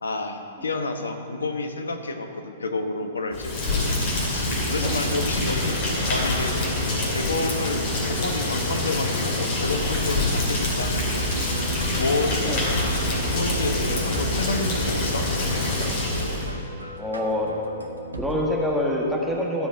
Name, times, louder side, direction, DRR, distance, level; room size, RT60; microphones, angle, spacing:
voice 1, 0.0-3.5 4.3-5.8 6.1-6.6 7.1-11.2 11.9-12.5 13.3-15.3, left 3 dB, 70° left, 5 dB, 1.0 m, -29 dB
Rain, 3.3-16.5, left 2 dB, 40° left, 2.5 m, -25 dB
voice 2, 4.8-5.2 12.4-12.6 17.0-17.5 18.2-19.7, left 1 dB, ahead, -4 dB, 1.4 m, -26 dB
sound 1, 10.8-18.5, right 1 dB, 80° right, 1.1 m, -34 dB
13.5 x 5.0 x 8.5 m, 2.6 s
figure-of-eight pair, 110°, 0 cm